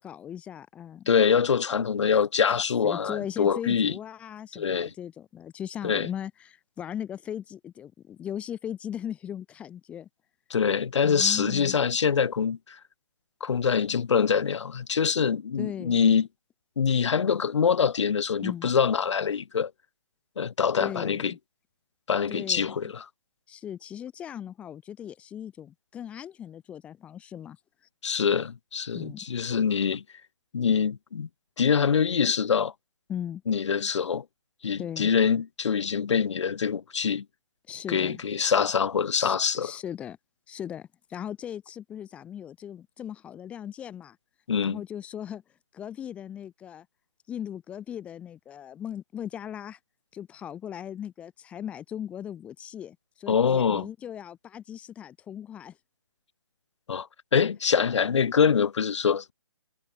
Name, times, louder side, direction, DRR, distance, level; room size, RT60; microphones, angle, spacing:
voice 1, 0.0-1.1 2.8-10.1 11.0-11.7 15.6-16.2 18.4-18.7 20.8-21.4 22.3-22.9 23.5-27.6 28.9-29.3 33.1-33.4 34.8-35.1 37.7-38.2 39.1-40.2 40.5-44.2 44.6-45.4 45.7-46.9 47.3-49.8 50.1-55.8, left 9 dB, 10° left, 1.7 m, -38 dB
voice 2, 1.1-3.9 4.5-4.9 5.8-6.1 10.5-12.8 13.4-16.3 16.8-19.7 20.4-21.3 22.1-23.0 28.0-30.0 30.5-31.3 31.6-32.7 33.5-34.2 34.6-37.2 37.9-39.7 44.5-44.8 53.3-53.9 56.9-59.3, left 6 dB, 75° left, 0.6 m, -24 dB
hypercardioid pair, 165°, 15 cm